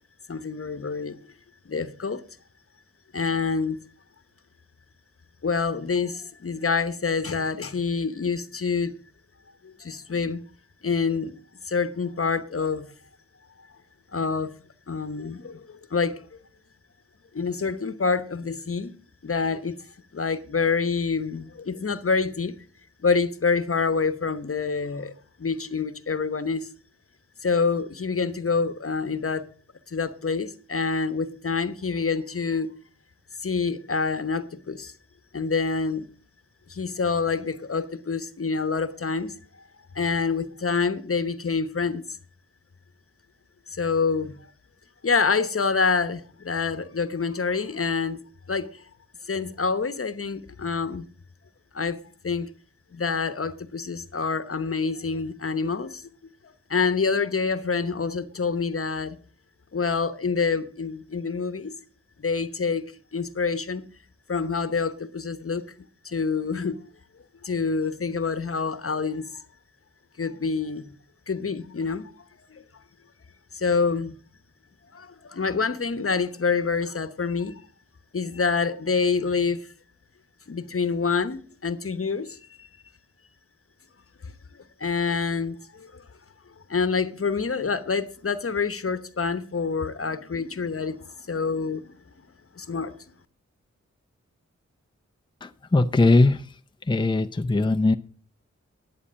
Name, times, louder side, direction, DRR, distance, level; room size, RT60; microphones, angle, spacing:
voice 1, 0.3-1.2 1.7-2.2 3.1-3.8 5.4-8.9 9.6-10.4 10.8-11.3 11.7-12.9 14.1-14.5 14.9-15.6 15.9-16.2 17.3-18.9 19.2-19.8 20.1-22.5 23.0-25.1 25.4-26.7 27.4-29.5 29.9-32.7 33.4-34.9 35.3-36.1 36.7-39.3 39.9-42.0 43.8-44.3 45.0-48.2 48.5-48.7 49.3-51.0 51.7-52.0 52.2-52.5 52.9-56.0 56.7-59.2 59.7-61.7 62.2-62.8 63.1-63.8 64.3-65.6 66.0-66.8 67.4-69.3 70.2-70.9 71.3-72.1 72.5-72.6 73.5-74.1 74.9-77.5 78.1-79.6 80.5-82.7 84.8-85.9 86.7-91.0 91.3-91.9 92.6-93.0, left 5 dB, 50° left, 1.0 m, -26 dB
voice 2, 95.4-96.5 96.9-97.9, left 2 dB, 15° left, 0.6 m, -20 dB
11.0 x 8.5 x 6.3 m
wide cardioid pair, 85°, 29 cm